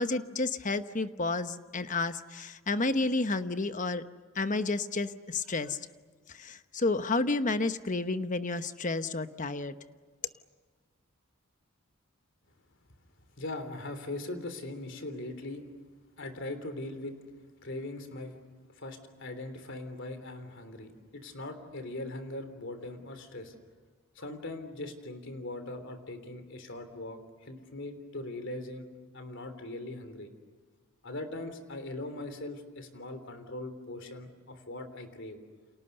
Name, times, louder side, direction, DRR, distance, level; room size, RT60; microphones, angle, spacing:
voice 1, 0.0-4.0 4.3-5.8 6.3-9.8, left 3 dB, 40° left, 10 dB, 1.0 m, -31 dB
voice 2, 13.4-15.6 16.2-17.2 17.6-18.4 18.7-23.6 24.2-28.9 29.1-30.3 31.0-35.4, left 2 dB, 60° left, 8 dB, 3.4 m, -40 dB
30.0 x 28.0 x 6.9 m, 1.5 s
head